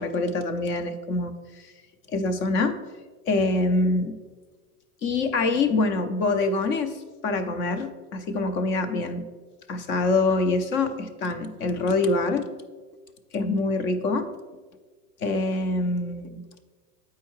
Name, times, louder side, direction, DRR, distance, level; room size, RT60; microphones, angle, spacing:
voice 1, 0.0-1.7 2.1-2.7 3.3-4.2 5.0-7.0 7.2-9.3 9.7-12.5 13.3-14.3 15.2-16.4, left 3 dB, 25° left, 9 dB, 0.4 m, -25 dB
8.2 x 4.7 x 4.5 m, 1.3 s
supercardioid pair, 130°, 47 cm